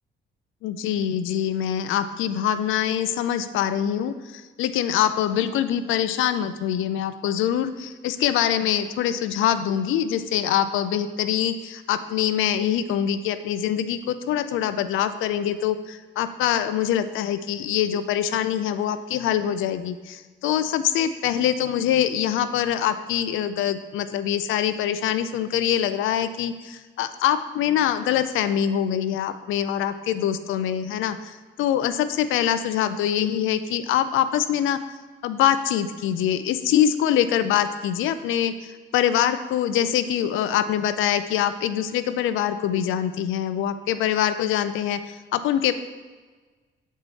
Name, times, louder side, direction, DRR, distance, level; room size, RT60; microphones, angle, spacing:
voice 1, 0.6-34.8 35.2-45.7, left 10 dB, 85° left, 12 dB, 0.5 m, -24 dB
7.3 x 4.5 x 4.0 m, 1.3 s
cardioid pair, 90°, 20 cm